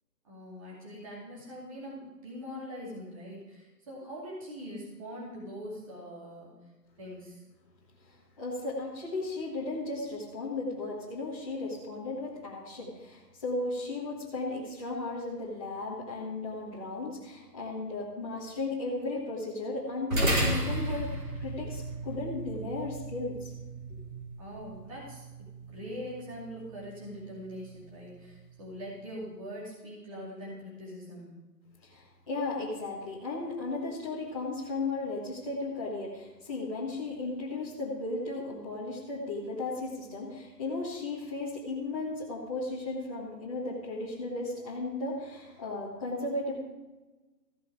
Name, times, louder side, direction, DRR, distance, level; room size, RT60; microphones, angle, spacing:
voice 1, 0.2-6.5 7.0-7.4 24.4-25.3 25.7-31.3, equal, 20° right, -6 dB, 2.5 m, -42 dB
voice 2, 8.0-21.1 21.4-23.5 23.9-24.0 31.8-46.7, left 2 dB, 20° left, -9 dB, 1.6 m, -35 dB
sound 1, 20.1-28.8, right 1 dB, 50° right, 5.0 m, -35 dB
15.0 x 8.1 x 4.9 m, 1.1 s
hypercardioid pair, 175°, 50 cm